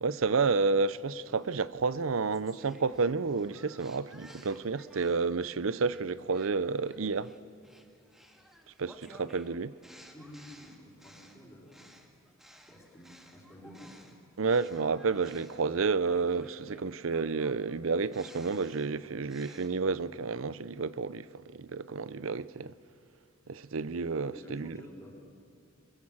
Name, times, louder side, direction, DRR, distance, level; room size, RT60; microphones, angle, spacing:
voice 1, 0.0-7.3 8.8-9.7 14.4-22.8 23.5-24.8, right 4 dB, 85° right, 0.6 m, -30 dB
sound 1, 1.3-5.4 5.9-14.2 14.5-19.7, equal, ahead, 1.8 m, -56 dB
voice 2, 9.9-11.9 12.7-14.0 24.3-25.1, left 1 dB, 15° left, 4.5 m, -50 dB
27.5 x 22.0 x 7.3 m
head